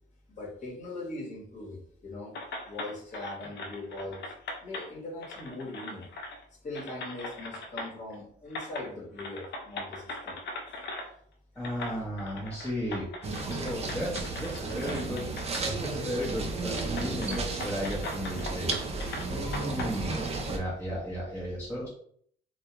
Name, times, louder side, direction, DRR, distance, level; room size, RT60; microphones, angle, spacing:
voice 1, 0.3-2.3 2.7-4.2 4.6-6.1 6.6-10.4 10.7-10.8, left 2 dB, 35° left, -3 dB, 1.0 m, -40 dB
sound 1, 2.3-4.9 5.2-6.4 6.7-8.1 8.5-8.9 9.2-11.1 11.6-15.7 16.0-16.1 16.8-19.9, left 2 dB, 60° left, 0.5 m, -40 dB
voice 2, 11.6-13.1 13.6-15.2 15.8-21.9, equal, 10° left, -7 dB, 0.7 m, -35 dB
sound 2, 13.2-20.6, right 3 dB, 30° right, 0.5 m, -33 dB
2.2 x 2.2 x 2.9 m, 0.62 s
cardioid pair, 90°, 20 cm